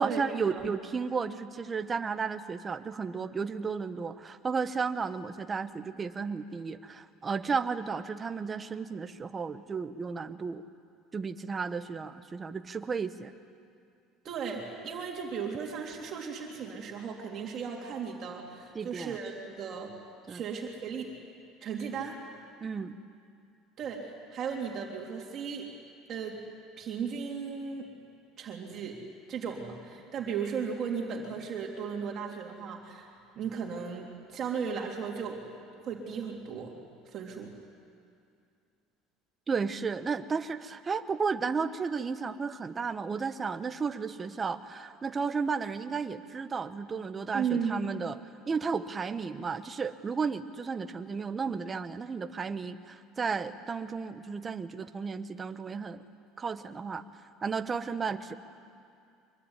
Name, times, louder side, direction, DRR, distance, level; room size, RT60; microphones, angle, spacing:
voice 1, 0.0-10.6 11.1-13.3 18.7-19.1 20.3-20.4 22.6-23.0 39.5-48.2 48.5-56.0 56.4-57.0 57.4-58.3, right 5 dB, 20° right, 9 dB, 1.1 m, -33 dB
voice 2, 14.2-20.0 20.3-21.1 21.6-22.2 23.8-25.7 26.1-26.4 26.8-27.9 28.4-29.0 29.3-33.1 33.3-35.4 35.8-36.7 37.0-37.5 47.3-47.7, right 6 dB, 40° right, 0 dB, 3.4 m, -36 dB
25.0 x 22.5 x 9.9 m, 2.4 s
cardioid pair, 135°, 0 cm